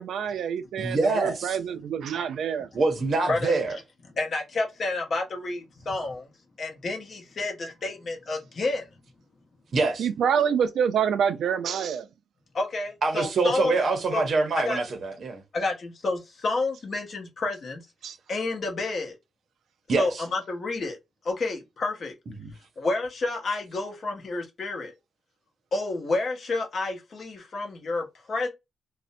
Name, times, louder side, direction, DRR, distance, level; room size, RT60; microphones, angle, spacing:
voice 1, 0.0-2.7 10.0-12.1 18.0-18.2, right 7 dB, 85° right, 0.4 m, -26 dB
voice 2, 0.8-1.6 2.7-3.8 9.7-10.1 13.0-15.4 19.9-20.2 22.4-22.5, right 3 dB, 50° right, 0.6 m, -25 dB
voice 3, 4.2-6.2 6.6-8.8 12.5-13.8 14.1-14.3 14.7-14.8 15.5-17.8 18.3-19.1 20.0-21.0 21.3-22.1 22.8-24.9 25.7-28.5, left 3 dB, 40° left, 0.8 m, -29 dB
2.5 x 2.1 x 2.5 m
wide cardioid pair, 155°, 0 cm